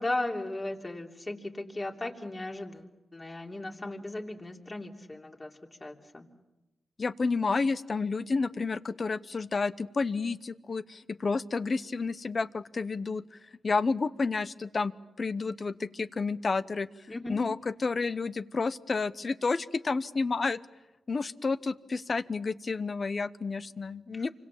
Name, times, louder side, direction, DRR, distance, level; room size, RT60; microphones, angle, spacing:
voice 1, 0.0-2.9 3.1-6.3 17.1-17.4 24.1-24.2, left 2 dB, 25° left, 2 dB, 3.0 m, -36 dB
voice 2, 7.0-13.4 13.6-14.9 15.2-16.9 17.3-20.6 21.1-24.3, left 4 dB, 45° left, 14 dB, 0.9 m, -30 dB
28.0 x 25.0 x 7.3 m, 0.99 s
cardioid pair, 90°, 0 cm